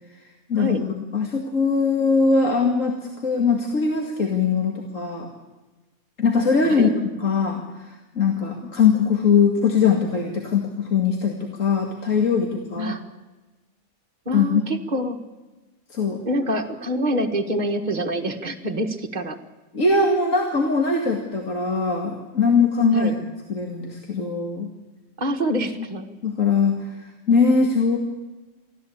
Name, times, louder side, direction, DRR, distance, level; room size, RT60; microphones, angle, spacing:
voice 1, 0.5-2.9 3.2-5.3 6.2-6.9 7.2-12.9 14.3-14.6 15.9-16.2 19.7-24.7 26.2-27.0 27.3-28.0, left 5 dB, 65° left, 2 dB, 2.6 m, -21 dB
voice 2, 14.3-15.2 16.2-19.4 22.9-23.2 25.2-26.1, equal, 30° right, 3 dB, 1.8 m, -26 dB
24.0 x 15.0 x 8.7 m, 1.2 s
omnidirectional pair, 1.5 m